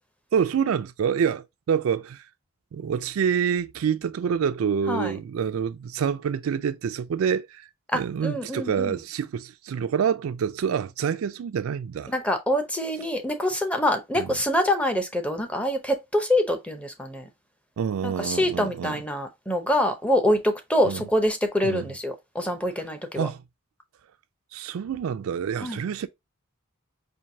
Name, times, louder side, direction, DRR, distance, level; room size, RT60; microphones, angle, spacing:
voice 1, 0.3-2.3 2.7-7.7 7.9-12.1 14.2-14.4 17.8-19.0 20.8-21.0 21.6-21.9 23.2-23.4 24.5-26.1, right 7 dB, 70° right, 0.3 m, -27 dB
voice 2, 7.9-8.9 12.1-17.3 18.0-23.3 25.6-25.8, left 1 dB, 5° left, 0.6 m, -25 dB
4.5 x 2.6 x 2.6 m
head